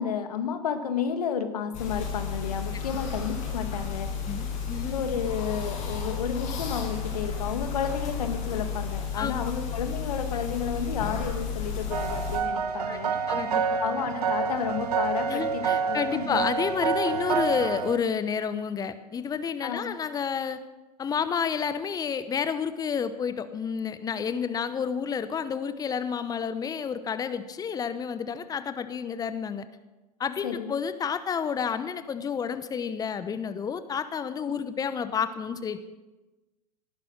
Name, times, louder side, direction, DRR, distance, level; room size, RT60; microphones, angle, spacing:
voice 1, 0.0-4.1 4.9-13.3 13.8-16.4 19.6-19.9 30.4-30.7 34.5-34.6, left 7 dB, 65° left, 8 dB, 1.9 m, -32 dB
sound 1, 1.7-12.4, left 6 dB, 40° left, 6.5 m, -32 dB
voice 2, 4.3-5.0 9.2-9.3 12.9-13.0 13.3-13.8 15.3-20.6 21.0-29.7 30.2-35.8, left 7 dB, 20° left, 12 dB, 1.0 m, -30 dB
sound 2, 11.9-18.0, right 6 dB, 70° right, 1.4 m, -28 dB
18.0 x 11.5 x 6.1 m, 1.1 s
figure-of-eight pair, 90°, 21 cm